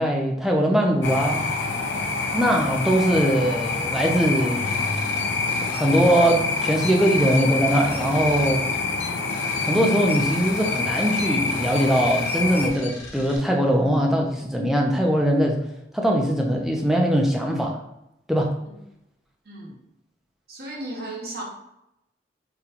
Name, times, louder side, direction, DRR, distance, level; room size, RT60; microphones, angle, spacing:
voice 1, 0.0-1.4 2.3-4.8 5.7-8.7 9.7-15.6 15.9-17.8 18.3-18.6, equal, ahead, 0 dB, 0.4 m, -21 dB
sound 1, 1.0-12.7, left 4 dB, 70° left, 0.4 m, -26 dB
sound 2, 4.6-13.4, left 4 dB, 40° left, 0.8 m, -40 dB
voice 2, 19.4-19.8 20.5-21.4, right 1 dB, 55° right, -2 dB, 0.8 m, -35 dB
3.8 x 2.2 x 2.8 m, 0.85 s
head